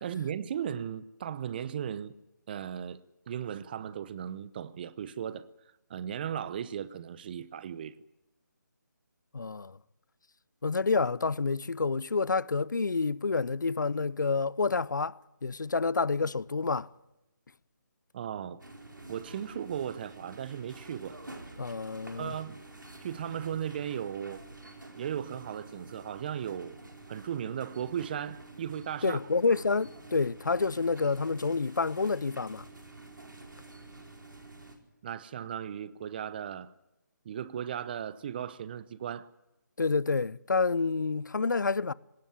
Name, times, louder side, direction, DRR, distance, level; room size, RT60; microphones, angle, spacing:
voice 1, 0.0-2.1 2.5-5.5 5.9-8.0 18.1-18.6 19.1-21.2 22.2-22.6 23.0-24.4 25.0-26.8 27.1-29.2 35.0-36.7 37.2-39.3, right 9 dB, 30° right, 0.9 m, -36 dB
voice 2, 9.3-9.8 10.6-16.9 21.6-22.4 29.0-32.7 39.8-41.9, left 4 dB, 70° left, 0.7 m, -28 dB
sound 1, 18.6-34.8, right 2 dB, 90° right, 4.8 m, -49 dB
19.5 x 18.5 x 9.6 m
figure-of-eight pair, 155°, 10 cm